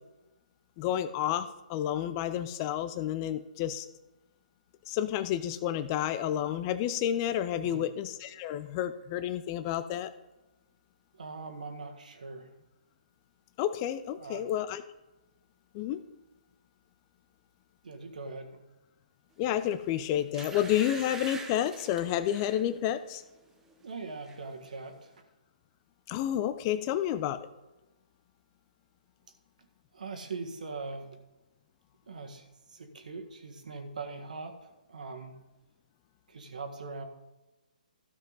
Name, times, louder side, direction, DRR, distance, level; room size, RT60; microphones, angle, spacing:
voice 1, 0.8-3.9 4.9-10.1 13.6-14.8 15.7-16.0 19.4-23.2 26.1-27.4, left 11 dB, 25° left, 11 dB, 0.5 m, -30 dB
voice 2, 11.2-12.5 14.2-14.5 17.8-18.5 23.8-25.1 29.9-31.1 32.1-35.3 36.3-37.0, right 3 dB, 60° right, 5 dB, 1.6 m, -41 dB
sound 1, 19.6-19.8 20.3-22.7 23.1-23.3 23.7-24.4 24.7-24.8, right 4 dB, 10° right, 0.9 m, -44 dB
13.0 x 7.2 x 4.0 m, 1.0 s
figure-of-eight pair, 130°, 5 cm